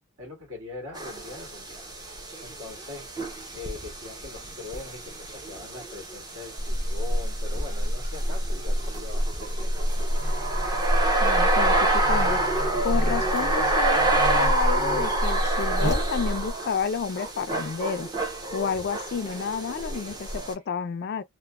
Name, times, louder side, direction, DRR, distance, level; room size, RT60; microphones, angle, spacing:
voice 1, 0.2-1.8 2.1-9.7, left 3 dB, 65° right, 1.7 m, -42 dB
sound 1, 0.9-20.5, right 2 dB, 20° right, 0.5 m, -29 dB
Buzz, 6.6-16.5, equal, 35° right, 0.9 m, -27 dB
voice 2, 11.2-12.4 12.8-18.1 18.5-21.2, left 6 dB, 45° left, 0.3 m, -30 dB
3.0 x 2.1 x 2.2 m
head